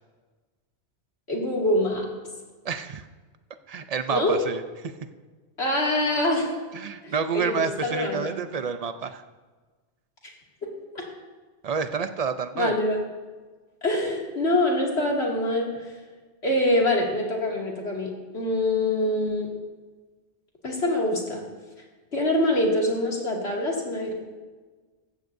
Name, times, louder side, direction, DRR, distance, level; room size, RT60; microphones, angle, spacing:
voice 1, 1.3-2.0 4.1-4.3 5.6-6.5 7.0-8.3 10.6-11.0 12.6-13.0 13.8-15.7 16.4-19.5 20.6-21.4 22.1-24.1, left 1 dB, 70° left, -2 dB, 2.7 m, -25 dB
voice 2, 2.6-3.1 3.7-4.9 6.7-9.2 11.6-12.8, right 6 dB, 40° right, 10 dB, 0.6 m, -29 dB
15.5 x 14.0 x 2.7 m, 1.4 s
omnidirectional pair, 1.1 m